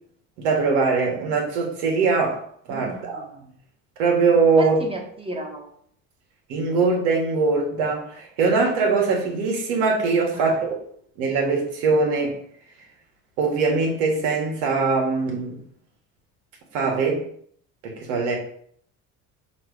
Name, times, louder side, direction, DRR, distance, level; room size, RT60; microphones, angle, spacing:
voice 1, 0.4-2.4 2.7-3.3 4.0-4.8 6.5-10.8 11.2-12.4 13.4-15.6 16.7-17.2 17.8-18.4, right 4 dB, 90° right, 0 dB, 2.0 m, -22 dB
voice 2, 2.7-3.5 4.6-5.7 10.3-10.6, right 2 dB, 15° right, 1 dB, 1.5 m, -34 dB
6.0 x 3.3 x 4.8 m, 0.63 s
supercardioid pair, 90°, 38 cm